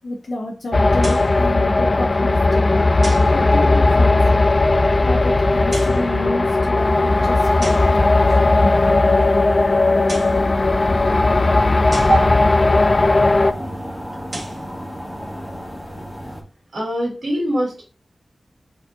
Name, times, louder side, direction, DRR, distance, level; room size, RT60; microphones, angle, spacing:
voice 1, 0.0-2.7 3.3-4.4 5.0-9.0, left 1 dB, 70° left, 1 dB, 0.7 m, -30 dB
sound 1, 0.7-13.5, left 2 dB, 45° left, 0.4 m, -16 dB
sound 2, 1.0-1.4 3.0-3.4 5.6-6.1 7.6-8.0 9.9-10.4 11.9-12.3 14.1-14.7, right 1 dB, 50° right, 1.6 m, -33 dB
sound 3, 6.8-16.4, equal, 5° right, 1.4 m, -35 dB
voice 2, 16.7-17.8, right 1 dB, 70° right, -3 dB, 2.3 m, -22 dB
4.4 x 4.2 x 2.8 m, 0.34 s
wide cardioid pair, 85°, 0 cm